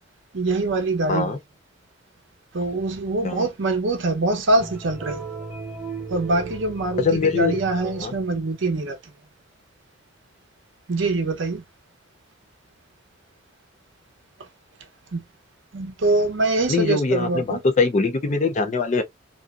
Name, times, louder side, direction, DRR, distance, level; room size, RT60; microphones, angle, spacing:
voice 1, 0.3-1.3 2.5-5.2 6.1-9.0 10.9-11.6 15.1-15.2 15.7-17.6, right 2 dB, 65° right, 0.7 m, -24 dB
sound 1, 4.6-8.7, right 4 dB, 10° right, 0.6 m, -36 dB
voice 2, 7.0-8.1 16.7-19.0, left 4 dB, 35° left, 0.4 m, -22 dB
2.5 x 2.1 x 2.3 m
head